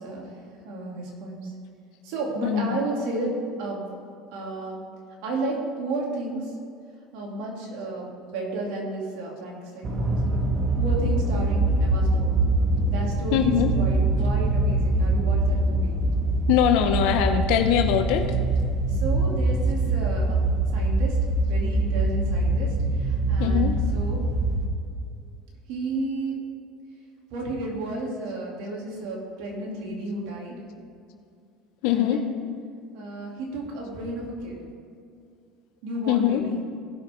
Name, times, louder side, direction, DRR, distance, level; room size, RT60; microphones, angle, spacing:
voice 1, 0.0-1.6 2.0-3.9 4.3-4.9 5.2-6.6 7.1-10.4 10.8-12.4 12.9-16.0 18.9-24.2 25.7-26.4 27.3-30.6 31.9-32.4 32.9-34.6 35.8-36.6, right 2 dB, 70° right, -2 dB, 2.8 m, -33 dB
sound 1, 9.8-24.7, right 2 dB, 40° right, 1.6 m, -23 dB
voice 2, 13.3-13.7 16.5-18.3 23.4-23.7 31.8-32.2 36.1-36.4, left 10 dB, 70° left, 7 dB, 0.7 m, -22 dB
18.0 x 5.9 x 3.7 m, 2.4 s
supercardioid pair, 95°, 0 cm